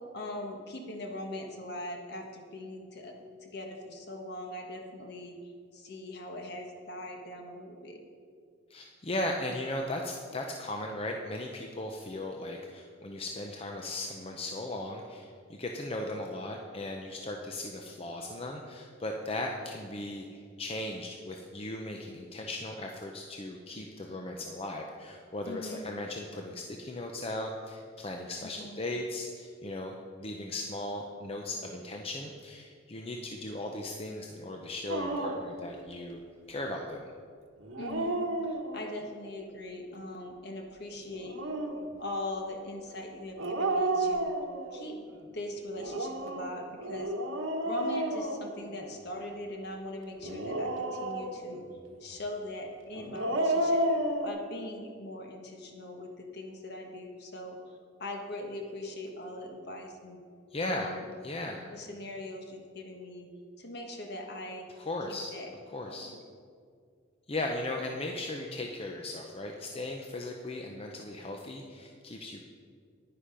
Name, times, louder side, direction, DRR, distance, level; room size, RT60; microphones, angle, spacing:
voice 1, 0.1-3.1 3.4-8.0 25.5-25.9 28.4-28.8 37.8-41.5 42.0-44.3 44.7-45.0 45.3-47.1 47.6-51.6 52.0-53.9 54.2-57.6 58.0-60.2 60.6-61.0 61.7-63.3 63.6-64.7 65.1-65.5 65.8-66.2, left 1 dB, 55° left, 3 dB, 1.4 m, -41 dB
voice 2, 8.7-36.2 36.5-37.1 60.5-61.0 61.2-61.7 64.8-65.3 65.7-66.1 67.3-72.4, left 1 dB, 30° left, 2 dB, 0.7 m, -37 dB
Dog, 34.9-35.5 37.6-39.0 41.1-41.9 43.4-44.8 45.8-49.0 50.2-51.6 52.9-54.3, right 1 dB, 80° right, 1.2 m, -31 dB
10.0 x 10.0 x 5.1 m, 2.2 s
head